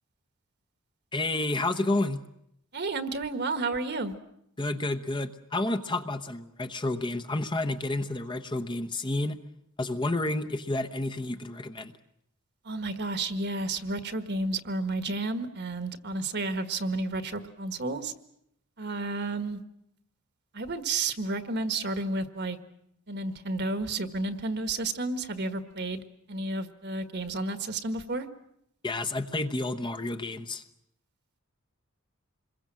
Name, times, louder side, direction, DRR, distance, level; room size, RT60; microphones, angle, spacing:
voice 1, 1.1-2.2 4.6-9.4 9.8-11.9 28.8-30.6, left 2 dB, 20° left, 7 dB, 1.0 m, -30 dB
voice 2, 2.7-4.1 12.6-18.1 18.8-19.6 20.5-22.6 23.1-26.0 26.3-28.3, right 2 dB, 50° right, 9 dB, 1.6 m, -31 dB
27.0 x 22.0 x 7.6 m, 0.75 s
head